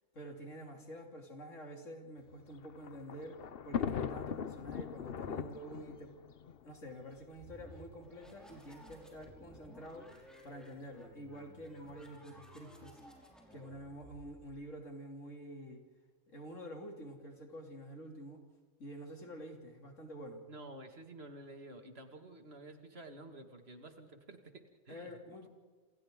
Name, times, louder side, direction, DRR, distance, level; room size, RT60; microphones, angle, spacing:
voice 1, 0.1-6.2 6.6-13.0 13.5-15.8 16.3-18.4 18.8-20.4 24.9-25.5, equal, 90° left, 2 dB, 3.5 m, -48 dB
Thunder, 2.3-7.6 8.4-8.5 8.8-8.9 9.9-10.2, left 8 dB, 55° left, 0.9 m, -40 dB
sound 1, 7.3-14.8, equal, ahead, 5.5 m, -57 dB
voice 2, 20.5-25.2, right 2 dB, 55° right, 5 dB, 2.5 m, -51 dB
28.5 x 28.0 x 3.9 m, 1.4 s
omnidirectional pair, 1.3 m